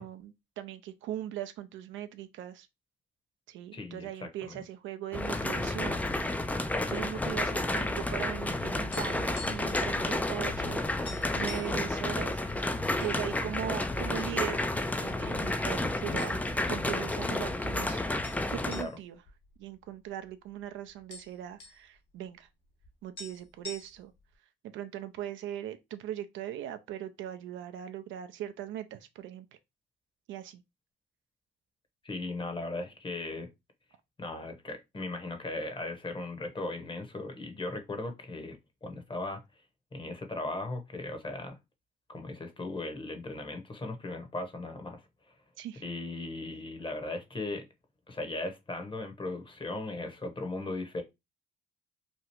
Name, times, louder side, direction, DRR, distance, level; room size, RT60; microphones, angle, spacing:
voice 1, 0.0-2.7 3.5-6.1 6.9-16.4 16.7-18.0 18.5-19.2 19.6-22.5 23.0-24.1 24.6-29.5 30.3-30.6 45.6-45.8, right 11 dB, 70° right, 0.4 m, -40 dB
voice 2, 3.7-4.6 6.7-7.0 18.8-18.9 32.0-33.5 34.2-39.4 39.9-41.6 42.1-45.0 45.8-47.6 48.1-51.0, left 2 dB, 25° left, 0.9 m, -37 dB
sound 1, 5.1-18.8, left 2 dB, 5° left, 0.3 m, -31 dB
sound 2, 8.9-9.8 10.1-10.3 10.6-10.7 11.1-11.8 12.5-13.2 13.5-13.7 14.4-15.0 15.7-15.8 16.2-16.7 17.1-17.2 18.2-20.3 20.6-20.7 20.9-21.8 22.8-22.9 23.2-24.2, left 3 dB, 55° left, 1.2 m, -46 dB
3.0 x 2.3 x 2.9 m
supercardioid pair, 65°, 21 cm